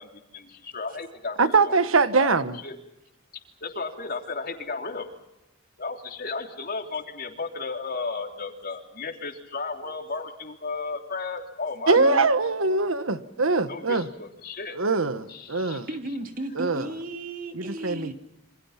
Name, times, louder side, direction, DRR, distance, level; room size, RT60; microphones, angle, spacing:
voice 1, 0.0-1.7 2.2-2.4 2.6-2.8 3.6-5.1 5.8-12.2 13.7-14.8 15.3-15.9, left 4 dB, 50° left, 4 dB, 3.3 m, -34 dB
voice 2, 1.4-2.5 11.9-14.1 14.7-15.9 16.6-16.9 17.5-18.1, right 3 dB, 90° right, 12 dB, 1.3 m, -22 dB
voice 3, 11.9-12.3 15.9-18.1, right 1 dB, 45° right, 5 dB, 2.8 m, -34 dB
28.0 x 26.0 x 5.8 m, 0.88 s
head